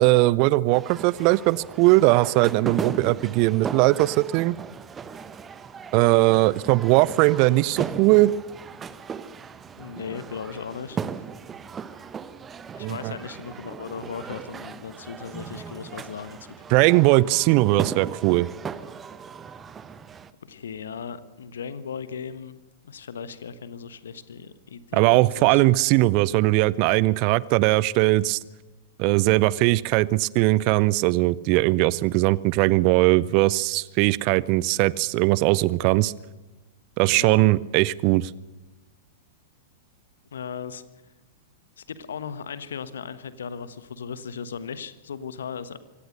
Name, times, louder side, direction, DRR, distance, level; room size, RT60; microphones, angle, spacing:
voice 1, 0.0-4.6 5.9-8.3 12.8-13.1 16.7-18.5 24.9-28.4 29.0-36.1 37.0-38.3, right 19 dB, 40° right, 22 dB, 0.6 m, -20 dB
sound 1, 0.7-20.3, right 6 dB, 20° right, 1.0 m, -37 dB
voice 2, 9.8-11.0 12.7-16.8 20.5-22.6 22.8-25.6 37.1-37.4 40.3-40.8 41.8-45.8, left 6 dB, 65° left, 14 dB, 1.3 m, -37 dB
25.0 x 17.5 x 6.6 m, 1.1 s
figure-of-eight pair, 100°, 0 cm